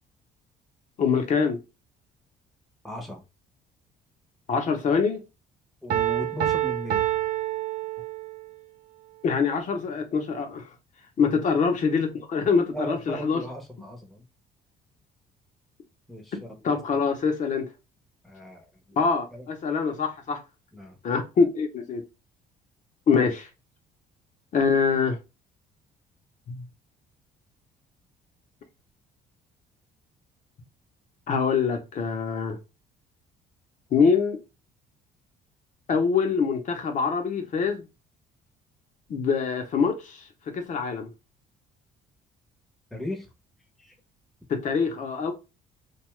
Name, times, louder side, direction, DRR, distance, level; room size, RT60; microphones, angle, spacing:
voice 1, 1.0-1.6 4.5-5.2 9.2-10.6 11.2-13.4 16.6-17.7 19.0-20.4 21.0-22.0 23.1-23.5 24.5-25.2 26.5-26.6 31.3-32.6 33.9-34.4 35.9-37.9 39.1-41.1 44.5-45.3, left 5 dB, 50° left, 0.6 m, -24 dB
voice 2, 2.8-3.2 5.8-7.1 11.3-11.6 12.7-14.2 16.1-17.1 18.2-19.0 19.3-19.5 20.7-21.0 42.9-43.3 43.8-44.0, equal, ahead, 0.7 m, -37 dB
Piano, 5.9-8.5, right 12 dB, 60° right, 0.4 m, -27 dB
2.7 x 2.3 x 3.0 m
cardioid pair, 110°, 17 cm